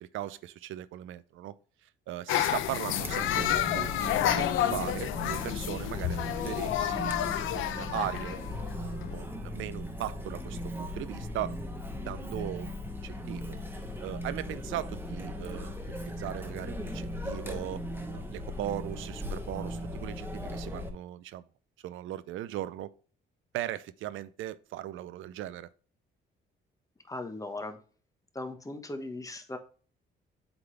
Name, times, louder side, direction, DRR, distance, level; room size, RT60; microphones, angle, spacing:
voice 1, 0.0-1.6 1.8-7.1 7.5-8.4 8.7-11.5 11.9-13.6 14.0-17.8 18.1-21.5 21.8-22.9 23.5-25.7, right 13 dB, 80° right, 0.5 m, -38 dB
sound 1, 2.3-9.2, left 12 dB, 85° left, 0.6 m, -30 dB
Chatter, 3.0-20.9, left 1 dB, 10° right, 1.1 m, -38 dB
voice 2, 27.1-27.8 28.3-29.6, left 2 dB, 15° left, 1.2 m, -38 dB
8.0 x 3.9 x 3.3 m
cardioid pair, 90°, 20 cm